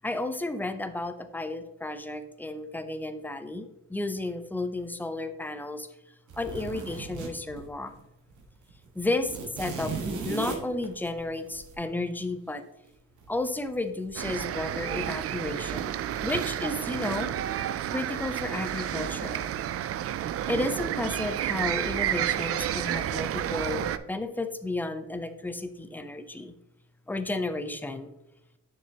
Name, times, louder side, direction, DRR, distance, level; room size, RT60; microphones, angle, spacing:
voice 1, 0.0-5.9 6.4-8.0 8.9-9.9 10.2-12.6 13.3-17.3 17.9-19.5 20.5-26.5 27.1-28.1, left 2 dB, 5° left, 9 dB, 0.6 m, -32 dB
sound 1, 6.3-8.0 8.3-8.4 8.7-11.7 13.2-13.7 14.1-14.3, right 4 dB, 75° right, 1.5 m, -36 dB
sound 2, 14.2-24.0, right 11 dB, 50° right, 0.4 m, -31 dB
6.6 x 6.5 x 2.9 m, 0.90 s
cardioid pair, 90°, 30 cm